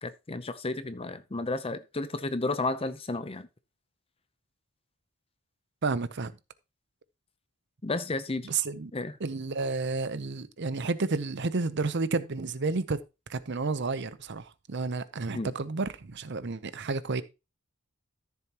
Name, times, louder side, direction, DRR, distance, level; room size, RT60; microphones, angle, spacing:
voice 1, 0.0-3.5 7.8-8.5 8.9-9.2 15.3-15.5, left 2 dB, 25° left, 0.6 m, -32 dB
voice 2, 5.8-6.3 8.4-8.9 9.2-13.0 13.3-17.2, right 3 dB, 55° right, 0.7 m, -31 dB
13.5 x 7.2 x 3.0 m
head